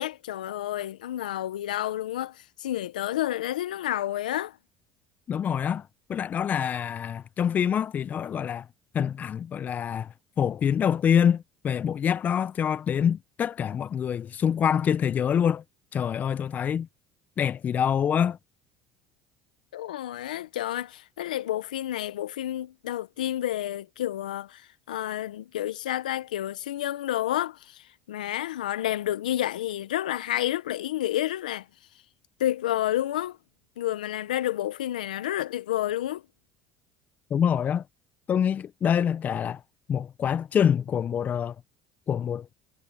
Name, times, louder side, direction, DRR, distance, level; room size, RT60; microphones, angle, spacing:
voice 1, 0.0-4.6 19.7-31.7 32.4-33.4 33.8-36.2, left 13 dB, 90° left, 1.1 m, -30 dB
voice 2, 5.3-8.7 8.9-15.6 15.9-16.9 17.4-18.4 37.3-37.8 38.3-39.6 39.9-41.6 42.1-42.5, left 8 dB, 40° left, 0.9 m, -26 dB
hypercardioid pair, 75°, 4 cm